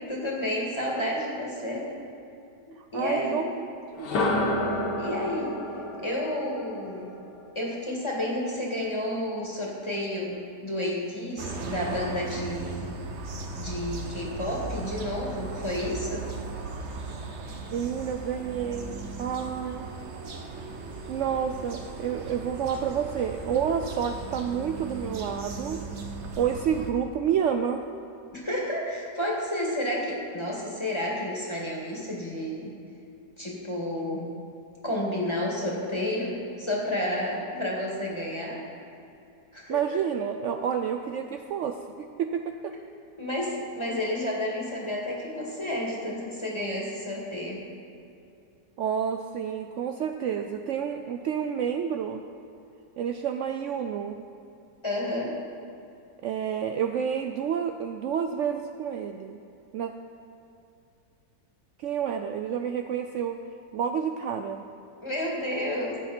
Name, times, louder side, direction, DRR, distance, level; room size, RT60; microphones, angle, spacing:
voice 1, 0.1-1.9 2.9-3.4 5.0-5.6 6.0-7.2 7.5-12.9 13.6-16.3 28.3-32.7 33.4-34.4 34.8-38.6 39.5-39.8 43.2-47.6 54.8-55.3 65.0-66.0, left 1 dB, 15° left, -3 dB, 2.2 m, -31 dB
voice 2, 2.8-3.7 4.0-4.1 17.7-19.9 21.1-25.8 26.4-27.8 39.7-42.7 48.8-52.2 53.0-54.2 56.2-59.4 59.7-59.9 61.8-63.4 63.7-64.6, right 8 dB, 80° right, 6 dB, 0.6 m, -29 dB
sound 1, 3.9-7.9, left 1 dB, 80° left, 1.9 m, -30 dB
sound 2, 11.4-26.9, right 3 dB, 50° right, 1.1 m, -37 dB
16.0 x 8.3 x 4.4 m, 2.6 s
omnidirectional pair, 1.8 m